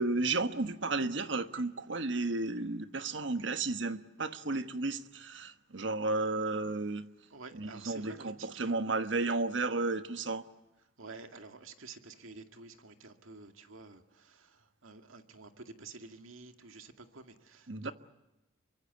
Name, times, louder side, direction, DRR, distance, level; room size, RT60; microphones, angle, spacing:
voice 1, 0.0-7.1 7.5-10.4 17.7-17.9, right 3 dB, 65° right, 1.3 m, -33 dB
voice 2, 7.3-8.7 11.0-17.9, right 4 dB, 90° right, 2.2 m, -50 dB
27.5 x 24.0 x 8.3 m
head